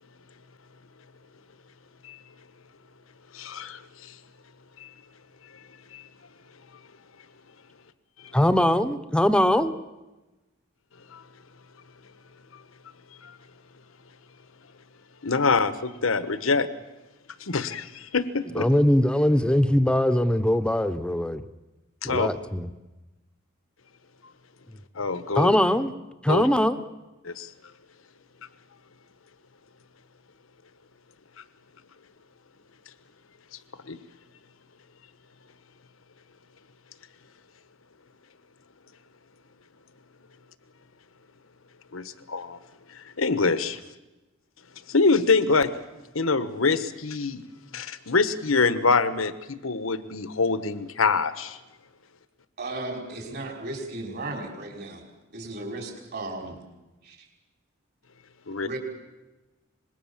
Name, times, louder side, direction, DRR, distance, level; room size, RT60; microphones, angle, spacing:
voice 1, 3.3-4.2 4.8-4.9 5.5-5.6 5.9-6.1 8.2-8.4 11.1-11.2 12.5-12.6 13.2-13.4 15.2-16.7 17.4-18.7 22.0-22.3 24.9-25.6 26.3-26.5 27.2-27.5 33.8-34.0 41.9-42.6 42.9-43.8 44.9-45.7 46.1-47.4 47.7-51.6 58.5-58.7, left 4 dB, 80° left, 1.2 m, -25 dB
voice 2, 8.3-9.7 18.5-21.4 22.0-22.7 25.3-25.9 26.2-26.8, left 1 dB, 5° left, 0.9 m, -21 dB
voice 3, 52.6-55.0 55.3-56.6 57.0-57.2 58.6-58.8, right 2 dB, 50° right, 5.7 m, -35 dB
25.5 x 21.0 x 7.3 m
head